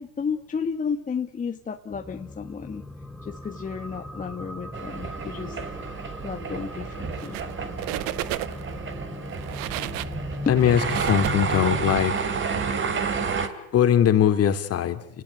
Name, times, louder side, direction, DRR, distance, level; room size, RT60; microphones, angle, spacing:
voice 1, 0.0-2.8 3.2-5.6 6.2-7.4, left 6 dB, 20° left, 4 dB, 1.5 m, -32 dB
sound 1, 1.9-11.9, left 1 dB, ahead, 1.9 m, -38 dB
sound 2, 4.7-13.5, right 5 dB, 30° right, 3.0 m, -30 dB
sound 3, 7.1-7.5 7.8-8.7 9.3-11.9, right 16 dB, 55° right, 1.3 m, -33 dB
voice 2, 10.5-12.2 13.7-15.2, left 9 dB, 35° left, 8 dB, 2.9 m, -21 dB
29.5 x 19.0 x 9.7 m, 0.75 s
hypercardioid pair, 105°, 42 cm